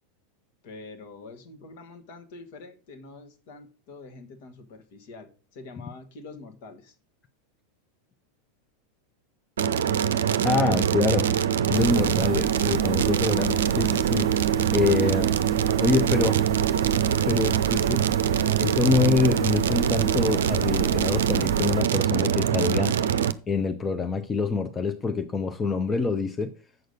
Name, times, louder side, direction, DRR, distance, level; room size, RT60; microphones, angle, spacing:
voice 1, 0.6-7.0, left 3 dB, 55° left, 1.6 m, -45 dB
sound 1, 9.6-23.3, right 9 dB, 70° right, 0.5 m, -23 dB
voice 2, 10.4-11.3 11.7-15.3 15.8-16.4 17.2-18.1 18.6-23.2 23.5-26.5, left 4 dB, 20° left, 0.7 m, -26 dB
sound 2, 11.7-21.8, right 11 dB, 35° right, 0.9 m, -36 dB
8.0 x 6.4 x 5.2 m
figure-of-eight pair, 90°, 0 cm